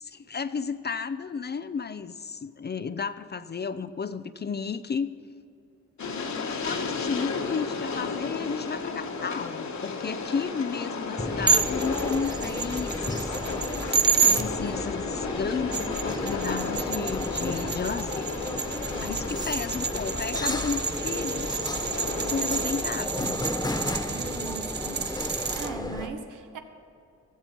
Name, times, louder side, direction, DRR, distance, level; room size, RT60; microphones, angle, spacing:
voice 1, 0.0-5.1 6.6-13.4 14.2-18.3 19.0-21.5 22.2-23.4, left 5 dB, 35° left, 12 dB, 0.5 m, -33 dB
Train, 6.0-22.9, left 4 dB, 65° left, 1.6 m, -34 dB
sound 1, 11.2-26.1, left 1 dB, 10° left, 1.3 m, -34 dB
sound 2, 11.5-14.4 15.5-25.7, right 6 dB, 35° right, 0.7 m, -30 dB
voice 2, 18.9-19.3 24.1-25.0 25.5-26.6, right 4 dB, 80° right, 6 dB, 1.4 m, -40 dB
15.5 x 14.0 x 4.5 m, 2.6 s
cardioid pair, 85°, 31 cm